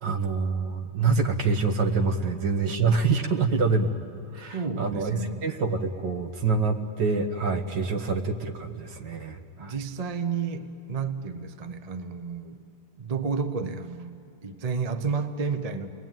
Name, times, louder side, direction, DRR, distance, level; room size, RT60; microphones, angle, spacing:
voice 1, 0.0-3.9 4.3-9.7, right 4 dB, 55° right, 5 dB, 2.0 m, -26 dB
voice 2, 4.5-5.4 9.6-12.6 13.0-15.9, right 5 dB, 40° right, 7 dB, 0.5 m, -31 dB
29.5 x 21.0 x 9.2 m, 2.5 s
omnidirectional pair, 2.4 m